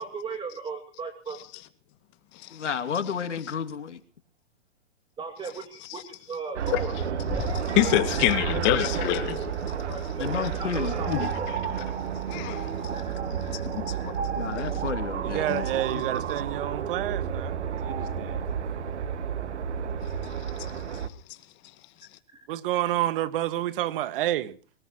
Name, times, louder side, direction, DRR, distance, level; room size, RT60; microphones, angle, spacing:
voice 1, 0.0-1.4 5.2-7.0 8.0-8.8 9.9-11.5 12.9-13.5 13.9-14.1, right 4 dB, 15° right, 2.7 m, -37 dB
voice 2, 2.5-4.0 10.2-11.0 14.4-15.5 15.9-16.0, left 6 dB, 90° left, 2.8 m, -31 dB
sound 1, 6.5-21.1, right 7 dB, 75° right, 2.0 m, -31 dB
sound 2, 7.2-7.7 8.1-8.7 9.3-9.9 10.4-10.8 11.5-11.8 12.5-12.9 13.8-13.9, left 3 dB, 5° left, 3.2 m, -38 dB
voice 3, 7.4-9.5 11.1-11.3 12.3-12.7 13.3-14.1 14.6-14.8 15.5-15.6 20.2-21.1, left 15 dB, 35° left, 2.1 m, -28 dB
voice 4, 15.2-18.4 22.5-24.6, right 14 dB, 50° right, 1.8 m, -29 dB
23.0 x 20.0 x 3.1 m
hypercardioid pair, 135°, 35 cm